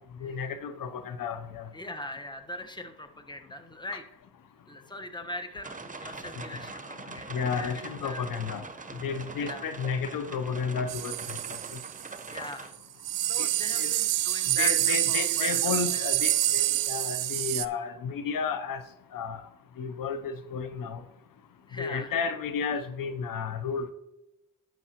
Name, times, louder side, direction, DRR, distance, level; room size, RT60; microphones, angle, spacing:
voice 1, 0.2-1.7 7.3-8.6 9.0-11.1 13.4-13.5 13.8-13.9 14.6-18.8 19.1-19.4 19.8-21.0 21.8-23.9, left 6 dB, 70° left, 10 dB, 0.8 m, -32 dB
voice 2, 1.7-4.0 4.7-8.2 9.4-9.7 12.3-12.8 13.3-16.0 21.7-22.1, left 1 dB, 15° left, 7 dB, 1.1 m, -40 dB
sound 1, 5.6-12.7, right 4 dB, 20° right, 0.8 m, -42 dB
sound 2, 10.9-12.3 12.7-12.8 13.0-17.7, right 15 dB, 70° right, 0.5 m, -27 dB
11.0 x 7.3 x 2.9 m, 0.89 s
supercardioid pair, 40°, 35 cm